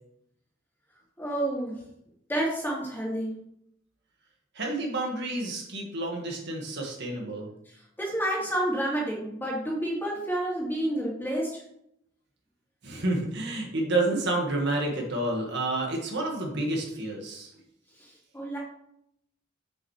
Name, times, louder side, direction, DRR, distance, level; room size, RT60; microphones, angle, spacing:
voice 1, 1.2-1.7 2.3-3.3 8.0-11.6 18.3-18.6, right 1 dB, 10° left, -4 dB, 2.6 m, -29 dB
voice 2, 4.5-7.5 12.8-17.5, right 2 dB, 60° right, 0 dB, 1.8 m, -29 dB
7.7 x 7.4 x 3.3 m, 0.75 s
head